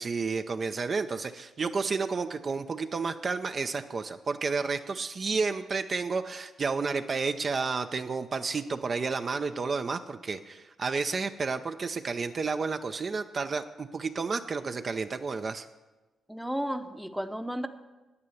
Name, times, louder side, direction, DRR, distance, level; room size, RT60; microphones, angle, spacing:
voice 1, 0.0-15.6, right 4 dB, 45° right, 8 dB, 0.5 m, -31 dB
voice 2, 16.3-17.7, equal, ahead, 9 dB, 0.7 m, -33 dB
9.6 x 8.8 x 7.1 m, 1.1 s
cardioid pair, 80°, 0 cm